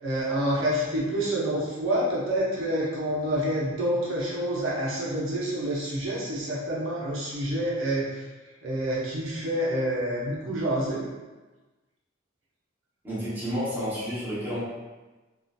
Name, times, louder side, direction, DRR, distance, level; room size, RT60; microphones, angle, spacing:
voice 1, 0.0-8.2 8.6-11.1, right 1 dB, 90° right, -6 dB, 0.7 m, -28 dB
voice 2, 13.0-14.6, equal, 10° right, -11 dB, 0.9 m, -30 dB
2.6 x 2.4 x 2.2 m, 1.2 s
head